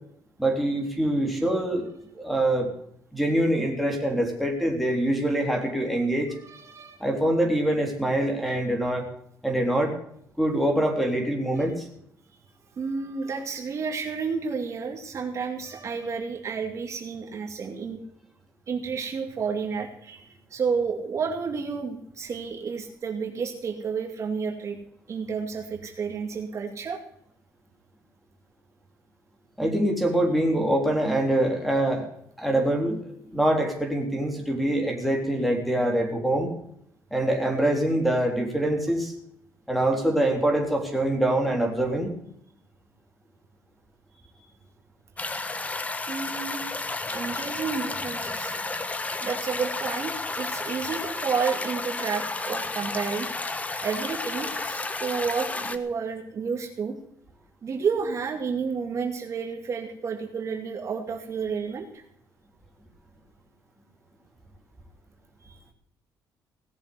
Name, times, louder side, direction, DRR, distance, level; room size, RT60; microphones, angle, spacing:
voice 1, 0.4-1.9 2.1-2.7 3.1-6.3 7.0-9.1 9.4-9.9 10.4-11.9 29.6-32.1 32.4-36.5 37.1-39.1 39.7-42.1, right 1 dB, ahead, 0 dB, 3.5 m, -24 dB
voice 2, 6.4-7.0 11.6-11.7 12.3-12.4 12.8-18.0 18.7-24.8 25.1-27.0 45.2-45.6 46.1-46.6 47.1-48.6 49.2-53.3 53.8-57.0 57.6-62.0 65.4-65.6, right 5 dB, 45° right, 3 dB, 2.3 m, -31 dB
sound 1, 45.2-55.8, left 3 dB, 20° left, 1.2 m, -32 dB
17.5 x 7.2 x 7.8 m, 0.71 s
cardioid pair, 120°, 7 cm